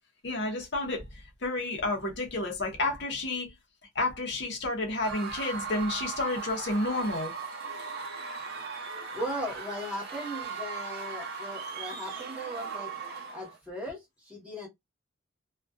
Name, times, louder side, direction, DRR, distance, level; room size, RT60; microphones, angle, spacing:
voice 1, 0.2-3.5 3.9-7.3, left 2 dB, 55° left, 0.7 m, -31 dB
Screaming / Cheering / Crowd, 5.0-13.6, right 5 dB, 50° right, 0.6 m, -38 dB
voice 2, 9.1-12.9 13.3-14.7, equal, 5° right, 1.0 m, -38 dB
2.5 x 2.2 x 2.3 m
head